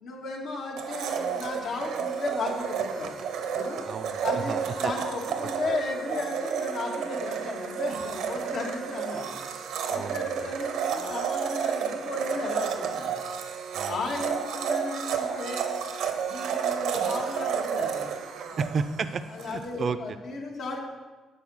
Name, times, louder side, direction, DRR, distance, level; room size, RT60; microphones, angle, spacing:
voice 1, 0.0-3.1 3.5-3.8 4.2-13.1 13.9-15.7 16.2-18.1 18.5-18.6 19.3-20.8, left 2 dB, 75° left, -1 dB, 1.8 m, -35 dB
Domestic sounds home sounds, 0.8-19.6, right 7 dB, 85° right, 0.9 m, -31 dB
voice 2, 3.8-4.9 5.4-5.5 9.9-10.5 13.7-14.0 18.6-20.0, right 5 dB, 50° right, 12 dB, 0.5 m, -32 dB
8.4 x 5.2 x 6.3 m, 1.2 s
cardioid pair, 90°, 0 cm